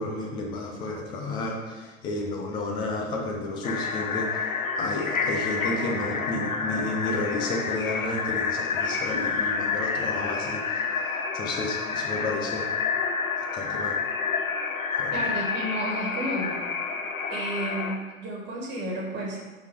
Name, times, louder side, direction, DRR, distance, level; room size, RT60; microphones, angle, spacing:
voice 1, 0.0-4.5 4.8-10.8 11.3-12.7 13.4-14.0 15.0-15.3, left 2 dB, 10° left, 0 dB, 0.3 m, -31 dB
sound 1, 3.6-18.0, left 5 dB, 80° left, 0.7 m, -29 dB
voice 2, 15.1-16.5 17.3-19.4, right 1 dB, 25° right, -2 dB, 1.7 m, -31 dB
5.1 x 4.1 x 4.8 m, 1.3 s
figure-of-eight pair, 95°, 41 cm